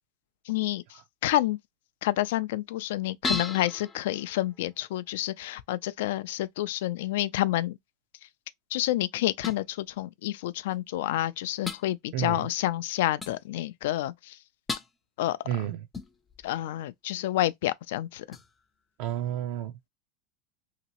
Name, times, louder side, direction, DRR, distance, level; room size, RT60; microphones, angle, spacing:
voice 1, 0.5-1.6 2.0-7.8 8.7-14.4 15.2-15.7 16.4-18.4, left 15 dB, 75° left, 0.4 m, -29 dB
sound 1, 3.2-5.0 9.4-9.6 10.7-10.8 11.6-11.8 13.2-13.4 14.7-15.0 15.9-16.5 18.3-18.6, left 3 dB, 10° left, 0.5 m, -35 dB
voice 2, 15.5-15.8 19.0-19.7, right 11 dB, 55° right, 0.4 m, -30 dB
3.0 x 2.8 x 2.9 m
supercardioid pair, 165°, 0 cm